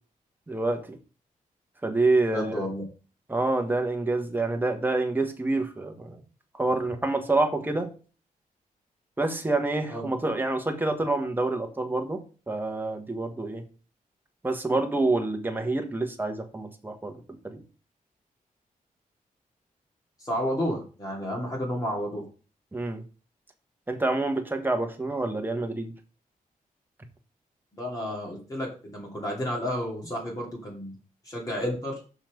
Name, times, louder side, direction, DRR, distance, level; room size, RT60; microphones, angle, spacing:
voice 1, 0.5-1.0 1.8-2.5 3.3-6.2 6.5-7.9 9.2-13.7 14.4-17.6 22.7-23.0 23.9-26.0, right 2 dB, 15° right, 1.4 m, -27 dB
voice 2, 2.3-2.8 9.9-10.1 20.2-22.2 27.7-30.9 31.2-32.0, equal, 25° left, 2.7 m, -31 dB
6.3 x 5.7 x 5.3 m
wide cardioid pair, 120°, 15 cm